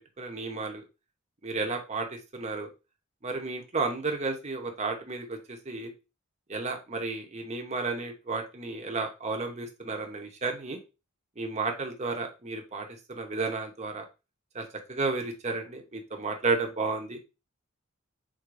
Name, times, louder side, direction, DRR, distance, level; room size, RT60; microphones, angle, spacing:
voice 1, 0.2-0.8 1.4-2.1 2.3-2.7 3.2-5.9 6.5-10.8 11.4-14.0 14.5-17.2, right 3 dB, 30° right, 3 dB, 0.8 m, -32 dB
4.7 x 3.9 x 2.5 m, 0.28 s
head